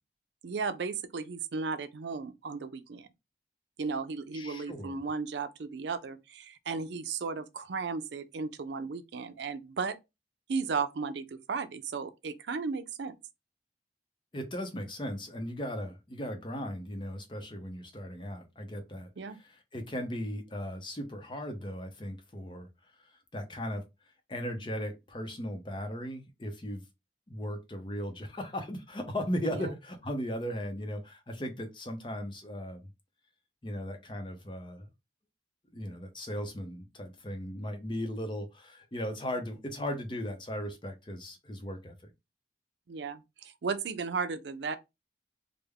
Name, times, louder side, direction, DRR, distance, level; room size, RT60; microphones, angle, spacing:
voice 1, 0.4-3.1 3.8-10.0 10.5-13.1 19.2-19.4 29.5-29.7 42.9-44.8, right 5 dB, 85° right, 0.5 m, -35 dB
voice 2, 4.3-5.0 14.3-22.7 23.0-23.8 24.3-26.8 27.3-32.9 33.6-34.9 35.7-42.1, equal, 25° left, 0.6 m, -37 dB
3.3 x 2.1 x 3.5 m
head